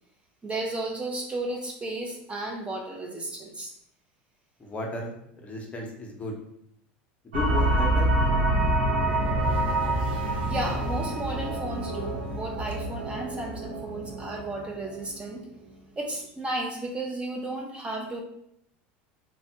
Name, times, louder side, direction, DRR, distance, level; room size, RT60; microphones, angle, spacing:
voice 1, 0.4-3.7 10.4-15.5 16.0-18.2, right 2 dB, 20° right, 1 dB, 0.4 m, -33 dB
voice 2, 4.6-5.1 5.4-6.3 7.3-8.0, left 2 dB, 25° left, 1 dB, 0.7 m, -33 dB
sound 1, 7.3-15.4, right 1 dB, 90° right, 0.6 m, -27 dB
3.3 x 2.1 x 2.7 m, 0.73 s
supercardioid pair, 105°, 5 cm